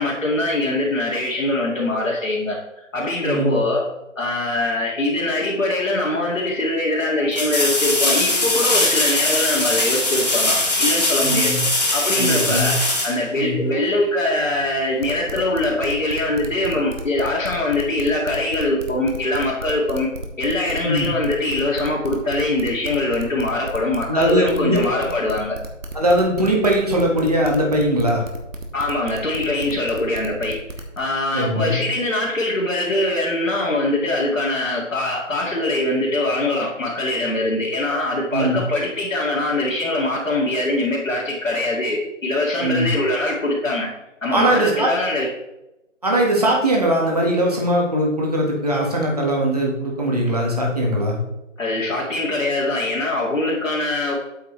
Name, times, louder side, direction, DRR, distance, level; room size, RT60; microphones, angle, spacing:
voice 1, 0.0-2.6 2.9-3.9 4.2-11.5 11.9-20.1 20.4-25.6 28.7-30.6 31.0-43.9 44.2-45.3 51.6-54.1, left 2 dB, 80° left, -6 dB, 2.3 m, -22 dB
voice 2, 3.2-3.6 11.2-11.6 12.1-12.7 13.3-13.5 20.8-21.1 24.1-24.8 25.9-28.2 31.3-31.7 38.3-38.6 42.6-42.9 44.3-44.9 46.0-51.2, right 1 dB, 30° right, -1 dB, 1.6 m, -20 dB
sound 1, 5.9-6.0 7.3-13.9 16.8-16.9, left 2 dB, 30° left, 1.5 m, -21 dB
sound 2, 15.0-31.0, right 2 dB, 80° right, 1.7 m, -33 dB
8.3 x 7.3 x 3.2 m, 0.96 s
figure-of-eight pair, 175°, 38 cm